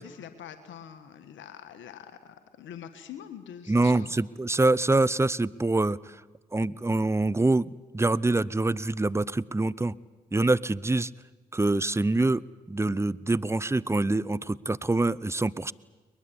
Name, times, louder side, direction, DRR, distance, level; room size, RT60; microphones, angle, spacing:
voice 1, 0.0-4.2, left 9 dB, 75° left, 9 dB, 1.6 m, -44 dB
voice 2, 3.7-6.0 6.5-9.9 10.3-11.1 11.5-12.4 12.7-15.7, right 2 dB, 15° right, 21 dB, 0.7 m, -25 dB
22.5 x 21.0 x 8.7 m, 1.3 s
supercardioid pair, 45°, 20 cm